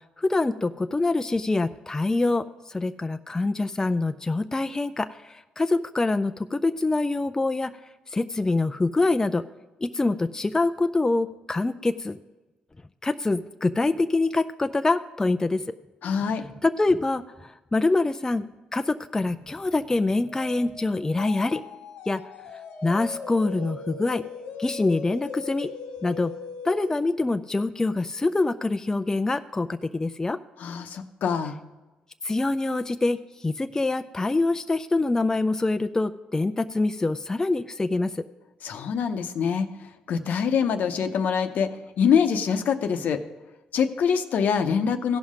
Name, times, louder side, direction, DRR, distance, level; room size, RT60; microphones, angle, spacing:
voice 1, 0.2-7.8 8.1-9.4 9.8-12.2 13.0-15.6 16.6-18.5 18.7-21.6 22.1-22.2 22.8-24.3 24.6-25.7 26.0-26.3 26.6-30.4 32.2-38.2, left 2 dB, 20° left, 10 dB, 0.4 m, -25 dB
voice 2, 16.0-16.4 30.6-31.6 38.6-39.7 40.1-41.7 42.0-43.2 43.7-45.2, left 7 dB, 70° left, 8 dB, 0.8 m, -24 dB
sound 1, 20.3-26.9, left 4 dB, 90° left, 1.0 m, -39 dB
16.0 x 5.6 x 5.0 m, 1.1 s
supercardioid pair, 70°, 3 cm